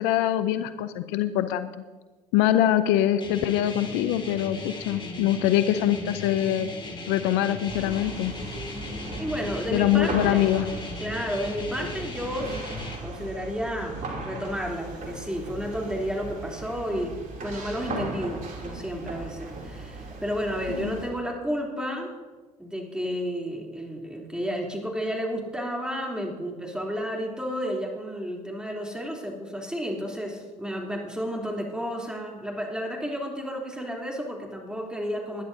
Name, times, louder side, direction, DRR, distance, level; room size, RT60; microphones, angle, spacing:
voice 1, 0.0-1.7 2.3-6.7 7.1-8.3 9.7-10.7 20.7-20.9, left 12 dB, 75° left, 12 dB, 0.6 m, -24 dB
sound 1, 3.2-13.0, left 2 dB, 25° left, 2.3 m, -37 dB
sound 2, 7.7-21.1, right 2 dB, 45° right, 3.0 m, -38 dB
voice 2, 9.2-10.5 11.0-14.0 14.2-22.1 22.6-35.4, equal, 5° right, -1 dB, 3.3 m, -32 dB
20.0 x 11.0 x 2.8 m, 1.3 s
hypercardioid pair, 65°, 18 cm